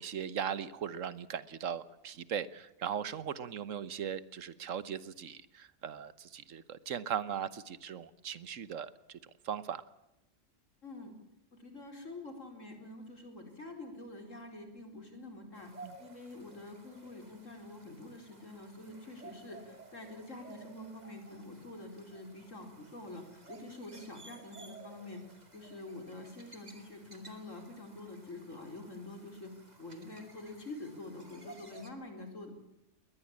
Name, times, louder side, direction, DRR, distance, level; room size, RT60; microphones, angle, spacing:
voice 1, 0.0-9.2 9.4-9.8 15.8-15.9, right 8 dB, 90° right, 16 dB, 1.4 m, -38 dB
voice 2, 10.8-11.1 11.5-15.7 16.0-25.2 25.5-29.5 29.8-32.5, left 2 dB, 80° left, 4 dB, 4.7 m, -47 dB
sound 1, 15.5-31.9, right 3 dB, 35° right, 2.5 m, -55 dB
21.5 x 20.0 x 8.8 m, 0.89 s
omnidirectional pair, 1.3 m